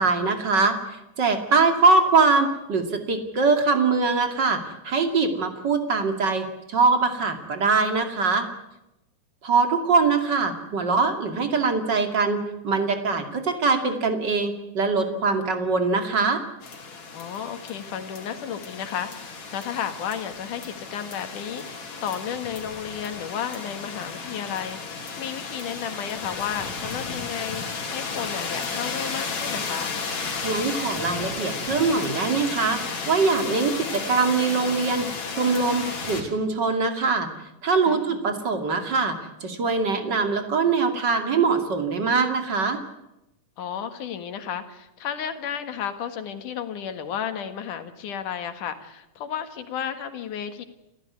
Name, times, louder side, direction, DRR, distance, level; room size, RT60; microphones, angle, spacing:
voice 1, 0.0-8.5 9.4-16.4 30.4-32.8 33.1-37.3 37.6-39.2 39.4-42.8, right 4 dB, 35° right, 6 dB, 2.9 m, -23 dB
sound 1, 16.6-36.2, left 4 dB, 60° left, 4.5 m, -33 dB
voice 2, 17.1-29.9 37.8-38.2 43.6-50.7, left 8 dB, 75° left, 9 dB, 3.2 m, -33 dB
29.0 x 14.5 x 9.7 m, 0.89 s
omnidirectional pair, 3.6 m